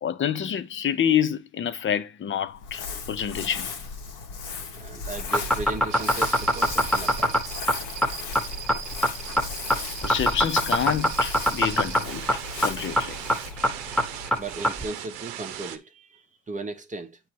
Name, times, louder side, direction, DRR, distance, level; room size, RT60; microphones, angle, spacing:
voice 1, 0.0-2.8 3.1-3.7 10.0-12.3 12.6-13.1, left 9 dB, 35° left, 0.7 m, -27 dB
Crumpling crinkling, 2.5-15.0, left 4 dB, 80° left, 1.5 m, -37 dB
voice 2, 4.7-7.6 8.3-8.5 14.3-17.2, right 2 dB, 20° right, 0.9 m, -37 dB
sound 1, 5.2-14.8, equal, ahead, 1.2 m, -23 dB
sound 2, 5.9-15.8, right 10 dB, 75° right, 0.9 m, -38 dB
8.8 x 3.2 x 4.6 m
supercardioid pair, 85°, 36 cm